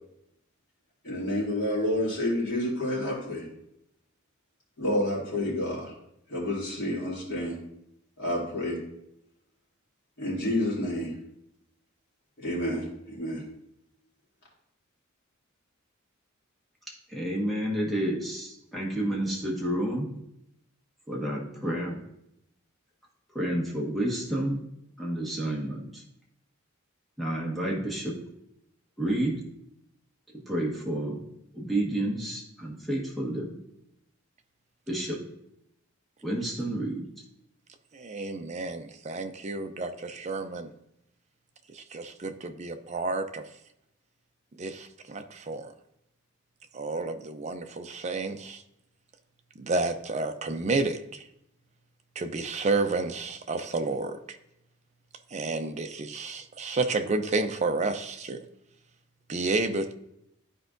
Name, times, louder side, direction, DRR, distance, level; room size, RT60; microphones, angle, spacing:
voice 1, 1.0-3.4 4.8-5.9 6.3-7.6 8.2-8.8 10.2-11.1 12.4-13.4, left 1 dB, 60° left, -6 dB, 2.7 m, -29 dB
voice 2, 17.1-20.1 21.1-22.0 23.3-24.6 25.0-26.0 27.2-28.1 29.0-29.4 30.5-31.2 31.5-33.5 34.9-35.2 36.2-37.1, right 1 dB, ahead, -5 dB, 1.4 m, -30 dB
voice 3, 37.9-40.7 41.7-43.4 44.6-45.7 46.7-48.6 49.6-51.2 52.2-54.4 55.3-58.4 59.3-59.9, right 3 dB, 35° right, 7 dB, 0.5 m, -30 dB
11.5 x 4.5 x 2.6 m, 0.79 s
head